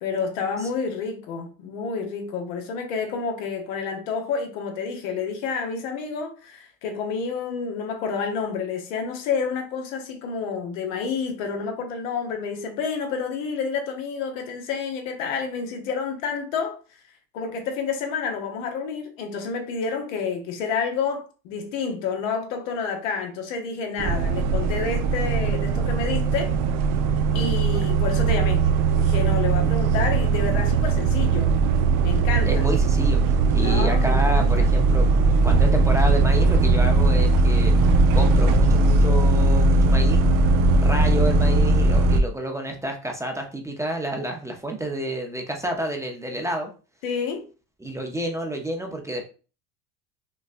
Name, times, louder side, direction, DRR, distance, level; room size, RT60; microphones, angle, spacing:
voice 1, 0.0-16.8 17.3-26.5 27.3-28.6 29.0-31.6 32.0-32.7 33.6-34.7 47.0-47.4, left 5 dB, 80° left, 1.0 m, -29 dB
sound 1, 24.0-42.2, right 3 dB, 55° right, 0.6 m, -19 dB
voice 2, 32.5-35.1 35.4-40.3 40.8-46.7 47.8-49.3, right 1 dB, 10° right, 0.6 m, -29 dB
5.5 x 2.2 x 2.5 m
supercardioid pair, 95°, 38 cm